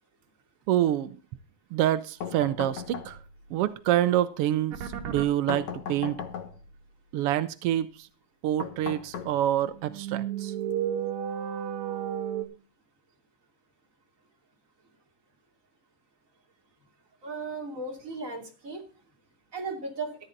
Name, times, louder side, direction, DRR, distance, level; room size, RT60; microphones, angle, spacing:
voice 1, 0.7-1.2 1.7-3.2 3.5-4.8 5.1-6.2 7.1-7.9 8.4-10.5, right 12 dB, 85° right, 13 dB, 1.3 m, -26 dB
sound 1, 2.2-3.5 5.5-6.8 8.6-9.8, left 7 dB, 70° left, 2.7 m, -38 dB
sound 2, 4.7-5.3 9.7-12.5, right 9 dB, 70° right, 2.8 m, -32 dB
voice 2, 17.2-18.8 19.5-20.2, right 3 dB, 25° right, 1 dB, 3.1 m, -36 dB
14.0 x 10.5 x 3.9 m, 0.34 s
omnidirectional pair, 3.5 m